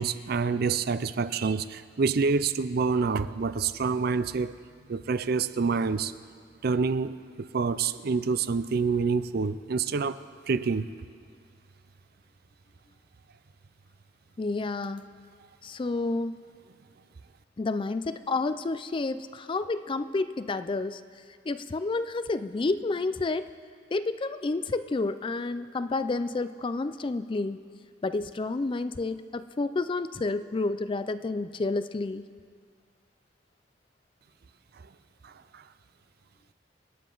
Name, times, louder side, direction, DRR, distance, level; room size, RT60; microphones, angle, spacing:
voice 1, 0.0-4.5 4.9-6.1 6.6-10.2 10.5-10.9 35.2-35.6, right 5 dB, 55° right, 13 dB, 0.5 m, -27 dB
voice 2, 14.4-15.1 15.6-16.4 17.6-21.0 21.5-23.5 23.9-27.6 28.0-32.2, left 3 dB, 25° left, 12 dB, 0.4 m, -30 dB
27.5 x 9.7 x 3.9 m, 2.1 s
head